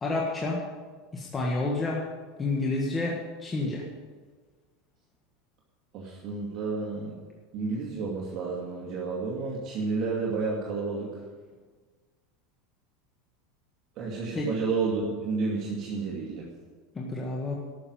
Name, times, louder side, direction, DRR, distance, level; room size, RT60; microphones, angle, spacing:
voice 1, 0.0-0.6 1.1-2.0 2.4-3.8 14.3-14.5 16.9-17.5, left 2 dB, 20° left, -2 dB, 1.6 m, -29 dB
voice 2, 5.9-7.1 7.5-11.2 14.0-16.5, right 4 dB, 45° right, -3 dB, 2.4 m, -31 dB
13.0 x 6.6 x 9.0 m, 1.5 s
supercardioid pair, 140°, 0 cm